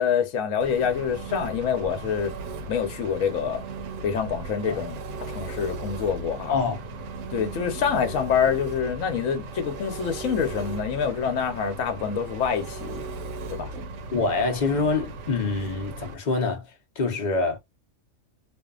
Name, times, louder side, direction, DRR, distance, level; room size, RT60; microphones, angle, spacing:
voice 1, 0.0-2.4 2.7-3.6 4.0-6.6 7.3-13.0 13.5-13.7, left 7 dB, 75° left, 1.1 m, -26 dB
Engine, 0.6-16.1, right 3 dB, 75° right, 0.9 m, -37 dB
voice 2, 6.5-6.8 14.1-16.6 17.0-17.6, left 4 dB, 40° left, 0.7 m, -25 dB
2.6 x 2.4 x 2.3 m
omnidirectional pair, 1.4 m